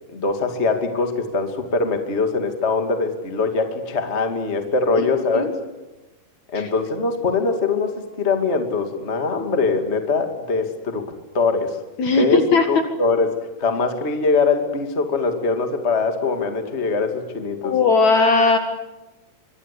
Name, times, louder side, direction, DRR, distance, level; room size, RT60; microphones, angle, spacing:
voice 1, 0.1-5.5 6.5-7.9 8.2-11.0 11.3-11.8 12.1-17.7, left 4 dB, 35° left, 5 dB, 1.0 m, -22 dB
voice 2, 5.0-5.5 6.5-6.7 12.0-12.7 17.6-18.6, left 4 dB, 55° left, 6 dB, 2.3 m, -18 dB
24.5 x 24.0 x 8.4 m, 1.1 s
omnidirectional pair, 5.6 m